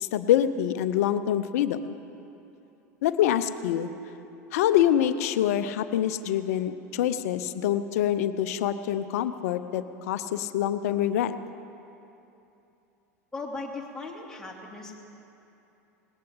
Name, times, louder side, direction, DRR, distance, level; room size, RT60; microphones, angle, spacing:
voice 1, 0.0-1.8 3.0-3.9 4.5-11.3, left 11 dB, 65° left, 12 dB, 0.7 m, -25 dB
voice 2, 13.3-15.0, left 3 dB, 5° left, -3 dB, 2.9 m, -37 dB
19.5 x 17.0 x 3.9 m, 2.9 s
figure-of-eight pair, 80°, 9 cm